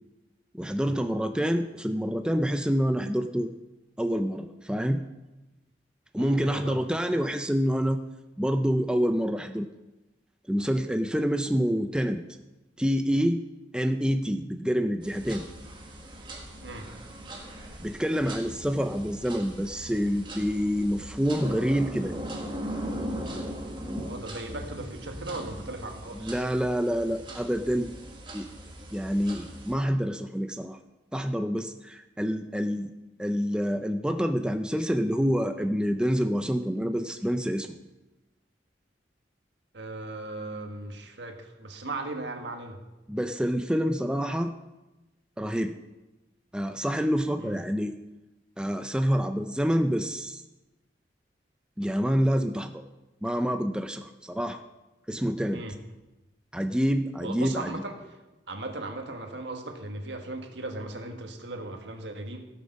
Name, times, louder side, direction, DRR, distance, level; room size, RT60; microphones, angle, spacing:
voice 1, 0.5-3.5 4.0-5.0 6.1-8.0 8.4-9.7 10.5-12.2 12.8-13.4 13.7-15.4 17.8-22.3 23.9-24.1 26.2-27.9 28.3-28.5 28.9-30.8 31.1-32.9 33.2-37.8 43.1-44.5 45.4-45.7 46.5-47.9 48.6-50.4 51.8-52.8 53.2-54.6 55.1-55.6 56.5-57.7, equal, 5° right, 7 dB, 0.4 m, -27 dB
voice 2, 6.2-6.8 16.6-16.9 24.0-26.3 35.6-35.7 39.7-42.8 47.4-47.6 55.5-55.8 57.2-58.0 58.5-62.4, right 2 dB, 80° right, 4 dB, 1.6 m, -37 dB
sound 1, 15.0-29.7, equal, 25° right, 1.5 m, -39 dB
17.0 x 6.8 x 5.3 m, 1.1 s
head